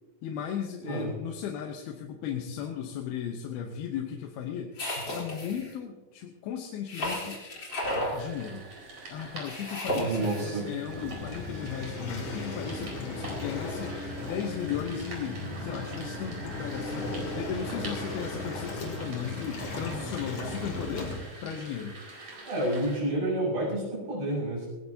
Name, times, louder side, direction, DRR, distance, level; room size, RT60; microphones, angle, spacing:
voice 1, 0.2-7.4 8.1-8.7 9.1-21.1 21.4-22.0, left 8 dB, 85° left, 2 dB, 3.0 m, -36 dB
sound 1, 4.8-5.7 6.9-8.2 9.4-10.5, left 1 dB, 30° left, 4.0 m, -33 dB
sound 2, 7.7-23.0, right 2 dB, 50° right, 5.9 m, -45 dB
voice 2, 9.9-10.7 22.4-24.7, right 1 dB, 75° right, -5 dB, 8.2 m, -29 dB
Waves surf, 10.9-21.2, left 2 dB, 50° left, 3.3 m, -36 dB
19.0 x 18.5 x 2.8 m, 1.2 s
omnidirectional pair, 4.3 m